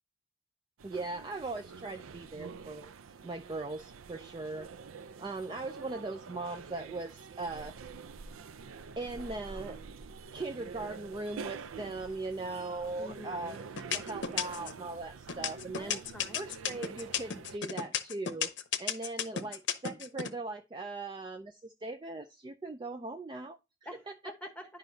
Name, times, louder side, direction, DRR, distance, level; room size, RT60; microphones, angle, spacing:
voice 1, 0.8-2.9 3.2-4.7 5.2-7.7 9.0-9.8 10.3-13.6 13.9-16.0 16.3-18.5 18.8-23.6 24.2-24.3, right 2 dB, 20° right, 7 dB, 0.3 m, -39 dB
sound 1, 0.8-17.6, right 5 dB, 85° right, 0.5 m, -47 dB
sound 2, 12.8-13.3 13.8-14.8 15.3-20.3, left 8 dB, 60° left, 0.7 m, -33 dB
voice 2, 13.0-13.6 15.7-16.4 23.8-24.7, equal, 5° left, 5 dB, 1.1 m, -47 dB
10.5 x 5.1 x 2.7 m, 0.25 s
head